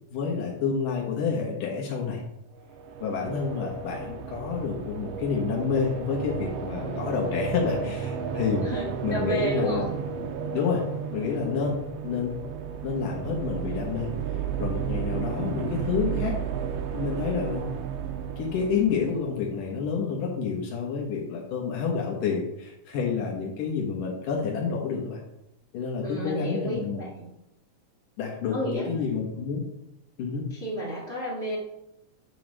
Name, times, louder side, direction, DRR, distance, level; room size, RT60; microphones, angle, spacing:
voice 1, 0.1-2.2 3.0-8.7 9.0-9.9 10.5-10.8 11.1-11.8 12.0-12.3 12.8-14.1 14.6-16.4 16.9-17.6 18.4-25.2 25.7-27.0 28.2-29.6 30.2-30.4, left 5 dB, 80° left, -1 dB, 2.9 m, -29 dB
sound 1, 2.6-19.6, right 7 dB, 90° right, 1.3 m, -33 dB
voice 2, 8.6-9.9 26.0-27.3 28.5-29.0 30.5-31.6, right 1 dB, 60° right, -5 dB, 0.6 m, -31 dB
9.2 x 4.7 x 6.5 m, 0.85 s
omnidirectional pair, 3.7 m